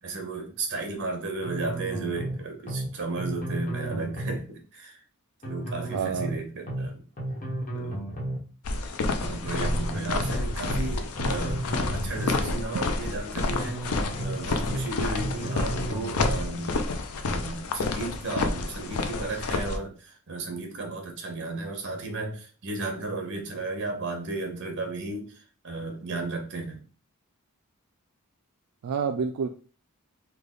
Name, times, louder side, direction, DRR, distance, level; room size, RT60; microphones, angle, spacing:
voice 1, 0.0-5.0 5.4-7.0 7.7-8.1 9.0-11.6 11.9-16.8 17.3-25.3 25.6-26.8, right 3 dB, 55° right, 3 dB, 0.9 m, -34 dB
sound 1, 1.4-2.4 2.7-2.9 3.2-4.4 5.4-6.4 6.7-6.9 7.2-8.4 9.4-10.4 10.7-10.9 11.2-12.4 13.4-14.4 14.7-14.9 15.2-16.4, right 1 dB, 35° left, 1.1 m, -33 dB
voice 2, 5.8-6.4 28.8-29.5, right 6 dB, 85° right, 5 dB, 0.3 m, -28 dB
sound 2, 8.6-19.8, left 3 dB, 70° left, 0.5 m, -29 dB
3.3 x 2.3 x 3.7 m, 0.39 s
head